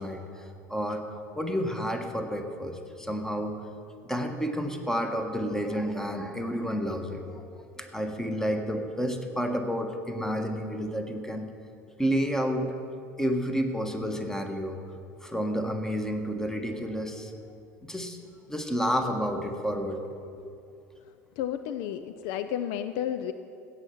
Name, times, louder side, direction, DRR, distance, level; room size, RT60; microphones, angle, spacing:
voice 1, 0.0-3.6 4.0-7.4 7.8-11.5 12.0-12.8 13.2-14.8 15.2-17.3 17.9-18.2 18.5-20.0 20.4-20.5, equal, 5° left, 6 dB, 1.3 m, -30 dB
voice 2, 21.4-23.3, left 10 dB, 55° left, 10 dB, 0.5 m, -32 dB
16.0 x 5.7 x 6.6 m, 2.5 s
figure-of-eight pair, 70°, 9 cm